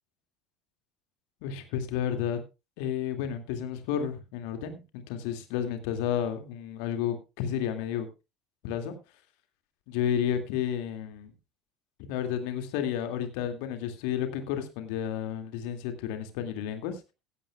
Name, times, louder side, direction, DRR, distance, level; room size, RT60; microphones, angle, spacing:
voice 1, 1.4-2.4 2.8-8.1 8.6-8.9 9.9-11.3 12.1-17.1, left 9 dB, 60° left, 7 dB, 2.2 m, -31 dB
16.5 x 12.5 x 2.3 m, 0.27 s
figure-of-eight pair, 65°, 0 cm